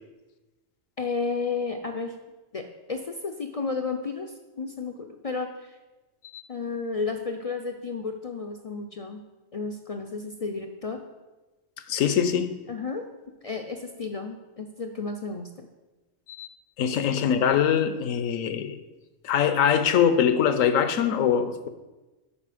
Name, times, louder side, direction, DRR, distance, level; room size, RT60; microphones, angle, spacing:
voice 1, 1.0-2.1 2.5-2.6 2.9-5.8 6.5-9.2 9.5-11.0 12.7-13.0 13.4-15.7, left 4 dB, 65° left, 4 dB, 0.3 m, -32 dB
voice 2, 11.9-12.5 16.3-16.5 16.8-18.8 19.2-21.7, left 8 dB, 85° left, 11 dB, 1.1 m, -23 dB
11.0 x 4.4 x 4.9 m, 1.1 s
omnidirectional pair, 1.3 m